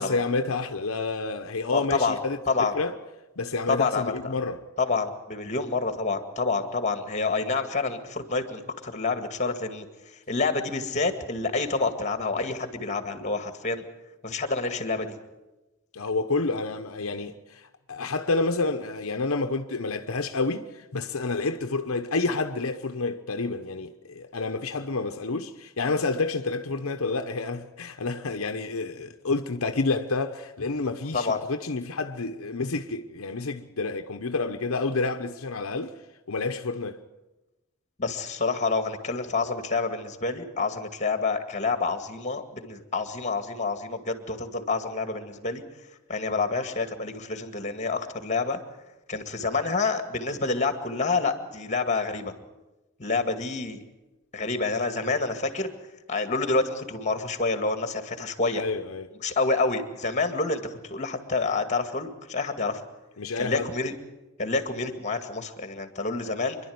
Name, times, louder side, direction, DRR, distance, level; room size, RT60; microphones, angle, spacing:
voice 1, 0.0-2.4 2.7-2.9 3.4-4.7 15.9-36.0 36.3-37.0 58.6-59.1 63.2-63.7, left 3 dB, 75° left, 0.9 m, -29 dB
voice 2, 1.7-2.2 2.5-2.7 3.7-4.3 4.8-9.9 10.3-13.8 14.2-15.2 31.1-31.4 38.0-45.6 46.1-48.6 49.1-52.3 53.0-53.8 54.3-55.7 56.1-58.6 59.2-62.8 63.4-63.9 64.4-66.6, left 3 dB, 35° left, 2.1 m, -28 dB
26.5 x 11.5 x 9.5 m
head